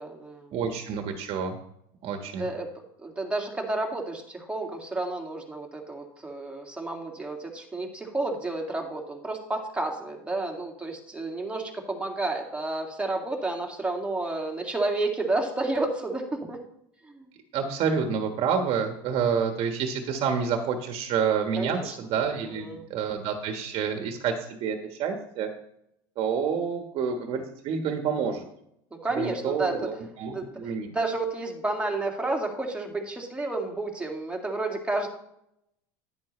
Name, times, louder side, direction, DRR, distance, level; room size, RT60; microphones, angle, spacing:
voice 1, 0.0-0.6 2.3-2.7 3.0-16.6 17.0-17.3 21.6-22.0 22.4-22.8 29.0-29.8 30.3-35.1, right 2 dB, 10° right, 0 dB, 2.2 m, -31 dB
voice 2, 0.5-1.6 2.0-2.5 17.5-25.5 26.2-28.4 29.1-30.9, right 6 dB, 50° right, 5 dB, 1.5 m, -28 dB
10.5 x 9.3 x 3.2 m, 0.75 s
supercardioid pair, 100°, 12 cm